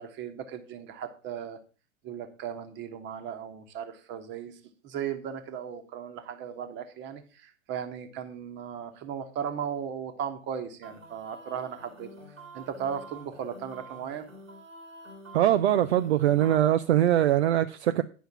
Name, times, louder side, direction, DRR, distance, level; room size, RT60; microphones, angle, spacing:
voice 1, 0.0-1.6 2.0-4.5 4.8-12.1 12.5-14.3, right 8 dB, 30° right, 1.2 m, -36 dB
sound 1, 10.8-16.9, right 1 dB, 85° right, 2.4 m, -48 dB
voice 2, 15.3-18.0, right 12 dB, 60° right, 0.5 m, -22 dB
9.2 x 5.6 x 5.6 m
figure-of-eight pair, 100°, 39 cm